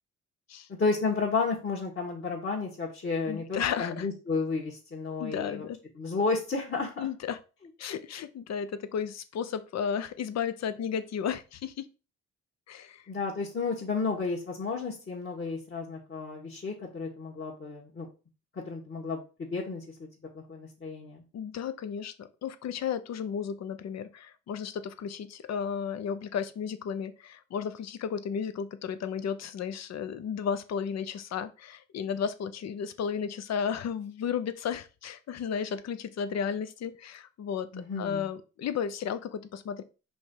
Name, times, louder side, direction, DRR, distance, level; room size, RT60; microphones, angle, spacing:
voice 1, 0.8-5.6 6.0-7.1 13.1-18.1 18.7-19.8 20.3-21.2 37.7-38.3, left 4 dB, 40° left, -4 dB, 1.7 m, -32 dB
voice 2, 3.3-4.1 5.2-5.8 7.0-7.4 7.8-11.8 12.7-13.0 21.3-39.8, left 7 dB, 60° left, 11 dB, 0.8 m, -33 dB
5.2 x 3.6 x 5.5 m, 0.32 s
cardioid pair, 90°, 30 cm